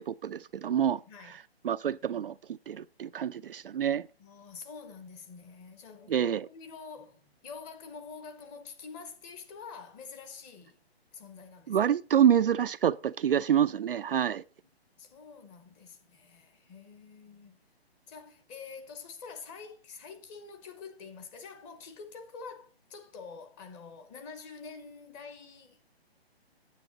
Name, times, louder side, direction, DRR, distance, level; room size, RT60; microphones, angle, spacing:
voice 1, 0.0-1.0 1.6-4.1 6.1-6.5 11.7-14.4, right 9 dB, 60° right, 0.5 m, -27 dB
voice 2, 4.2-10.8 11.1-11.8 15.0-17.6 18.1-25.8, left 5 dB, 15° left, 0.9 m, -47 dB
9.2 x 8.1 x 3.9 m
hypercardioid pair, 150°, 32 cm